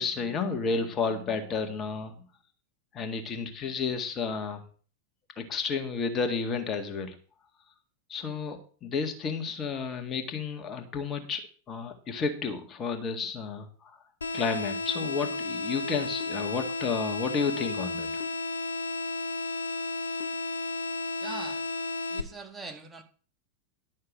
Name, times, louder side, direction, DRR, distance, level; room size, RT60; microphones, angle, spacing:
voice 1, 0.0-2.1 2.9-4.6 5.4-7.1 8.1-11.4 11.7-14.0 14.3-18.2, left 5 dB, 25° left, 6 dB, 1.8 m, -31 dB
sound 1, 14.2-22.2, left 2 dB, 75° left, 1.0 m, -33 dB
voice 2, 21.2-21.6 22.1-23.0, right 3 dB, 10° right, 4 dB, 1.9 m, -41 dB
12.0 x 6.5 x 6.1 m, 0.41 s
figure-of-eight pair, 90°, 0 cm